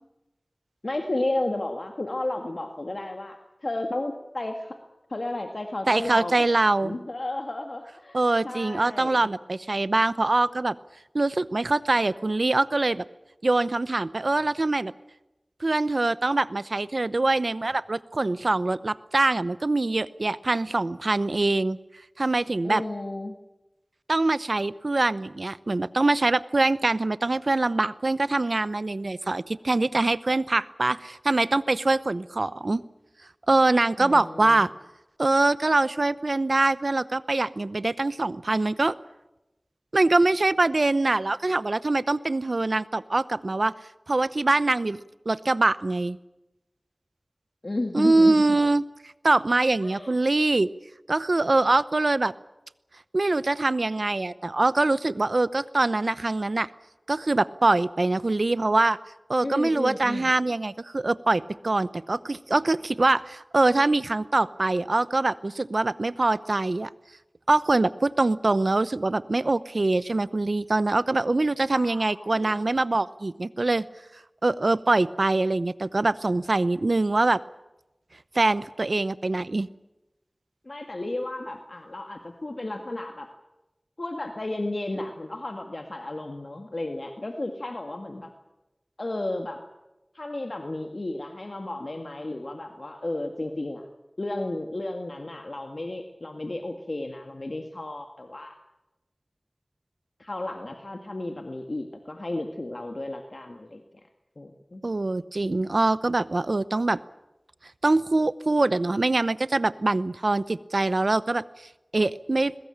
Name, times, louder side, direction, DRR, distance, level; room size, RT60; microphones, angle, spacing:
voice 1, 0.8-4.8 5.1-8.2 8.4-9.3 22.6-23.3 34.0-34.7 47.6-48.6 49.8-50.2 59.4-60.3 71.7-72.6 80.6-83.3 84.0-88.3 89.0-89.6 90.1-93.8 94.2-98.6 100.2-103.8 104.4-104.8, left 2 dB, 70° left, 4 dB, 1.9 m, -33 dB
voice 2, 5.9-7.0 8.1-10.8 11.1-13.0 13.4-14.9 15.6-21.8 22.2-22.8 24.1-32.8 33.5-34.7 35.2-38.9 39.9-43.7 44.1-45.0 45.3-46.2 47.9-48.8 49.2-50.7 51.1-52.3 53.1-56.7 57.1-59.0 59.3-66.9 67.5-73.9 74.4-77.4 78.3-79.7 104.8-107.0 107.8-111.4 111.9-112.6, right 2 dB, 75° right, 16 dB, 0.8 m, -23 dB
22.0 x 21.0 x 8.8 m, 0.97 s
wide cardioid pair, 40°, 0 cm